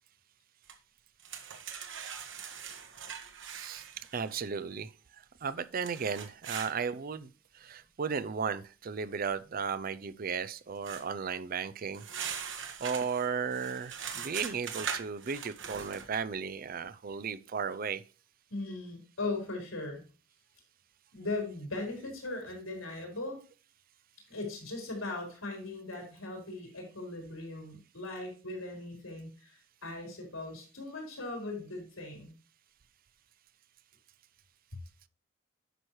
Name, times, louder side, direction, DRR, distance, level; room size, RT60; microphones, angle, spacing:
sound 1, 0.7-0.8 1.2-4.3 5.8-6.7 10.8-11.0 11.9-16.1, right 7 dB, 60° right, 1.4 m, -41 dB
voice 1, 3.5-4.9 5.4-12.0 12.8-18.0, right 6 dB, 45° right, 0.4 m, -35 dB
voice 2, 18.5-20.0 21.1-23.4 24.3-32.3, left 2 dB, 85° left, 4.1 m, -39 dB
9.9 x 6.2 x 3.1 m
head